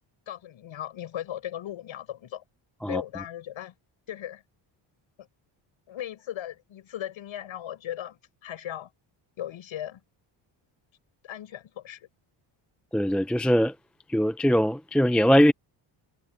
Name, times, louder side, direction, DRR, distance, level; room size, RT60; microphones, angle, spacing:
voice 1, 0.3-2.4 2.9-3.7 4.1-4.4 5.9-8.9 9.4-10.0 11.2-12.1, left 11 dB, 70° left, 6.6 m, -37 dB
voice 2, 12.9-13.8 14.1-15.5, equal, ahead, 0.5 m, -21 dB
cardioid pair, 100°, 49 cm